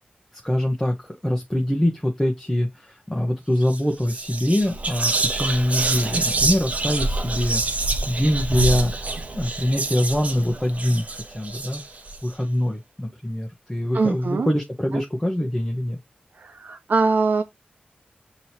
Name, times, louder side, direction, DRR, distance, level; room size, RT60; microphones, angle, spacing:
voice 1, 0.4-7.6 8.1-8.9 9.3-11.0 11.3-11.8 12.2-16.0, left 1 dB, 10° left, 1.0 m, -24 dB
Whispering, 3.6-3.8 4.1-12.2, right 2 dB, 45° right, 0.9 m, -26 dB
voice 2, 13.9-14.5 14.9-15.0 16.3-17.4, right 4 dB, 70° right, 0.8 m, -22 dB
6.2 x 3.0 x 2.8 m
wide cardioid pair, 90°, 3 cm